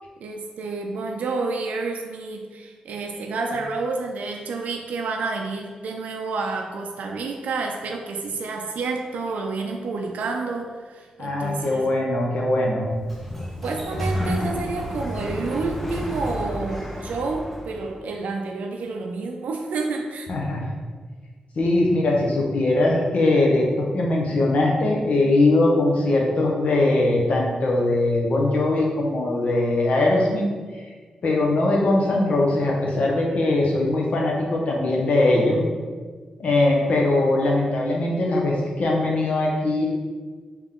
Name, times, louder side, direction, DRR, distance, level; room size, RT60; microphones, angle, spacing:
voice 1, 0.2-11.9 13.6-20.3, right 3 dB, 90° right, 2 dB, 0.4 m, -29 dB
voice 2, 11.2-12.9 20.3-20.7 21.6-30.5 31.2-35.6 36.4-39.9, left 2 dB, 60° left, -1 dB, 0.8 m, -21 dB
Sliding door, 12.8-17.9, equal, 5° left, 0.6 m, -30 dB
3.6 x 2.9 x 3.6 m, 1.5 s
wide cardioid pair, 120°, 2 cm